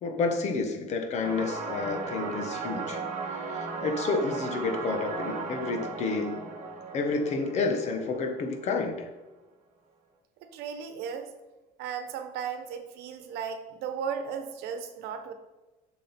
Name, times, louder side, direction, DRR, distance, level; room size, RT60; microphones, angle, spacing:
voice 1, 0.0-3.0 3.3-6.4 6.9-9.1, left 4 dB, 45° left, 3 dB, 1.2 m, -30 dB
sound 1, 1.2-8.8, right 4 dB, 45° right, 1.5 m, -36 dB
voice 2, 10.4-11.3 11.8-15.3, right 7 dB, 90° right, 8 dB, 1.0 m, -35 dB
7.3 x 6.3 x 4.3 m, 1.1 s
cardioid pair, 170°, 16 cm